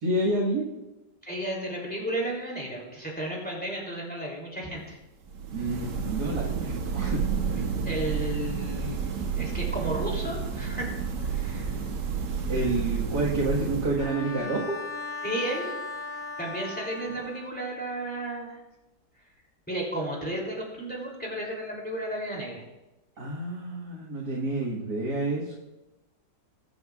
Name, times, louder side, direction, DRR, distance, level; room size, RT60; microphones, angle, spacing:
voice 1, 0.0-0.7 5.5-7.2 12.5-14.8 23.2-25.5, right 2 dB, 65° right, -5 dB, 2.2 m, -29 dB
voice 2, 1.2-5.0 7.8-9.0 9.3-10.9 11.2-11.8 15.2-15.7 16.4-18.6 19.7-22.6, right 1 dB, 5° left, -3 dB, 2.9 m, -33 dB
sound 1, 5.2-14.4, right 6 dB, 80° right, 1.7 m, -30 dB
Bowed string instrument, 14.0-17.7, left 3 dB, 55° left, 1.4 m, -37 dB
21.5 x 7.9 x 2.4 m, 0.98 s
omnidirectional pair, 1.9 m